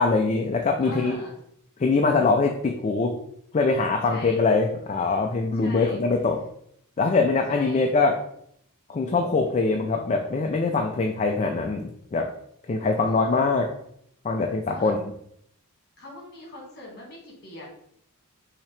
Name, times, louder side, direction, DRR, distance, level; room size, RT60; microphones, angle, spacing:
voice 1, 0.0-1.2 1.8-3.2 3.5-6.4 7.0-8.2 8.9-12.3 12.7-13.7 14.2-15.0, left 3 dB, 30° left, 3 dB, 0.4 m, -23 dB
voice 2, 0.8-1.3 4.1-4.4 5.5-6.0 7.5-7.9 12.8-13.4 14.7-14.9 16.0-17.7, left 2 dB, 50° left, -2 dB, 1.8 m, -42 dB
5.7 x 2.8 x 3.3 m, 0.69 s
head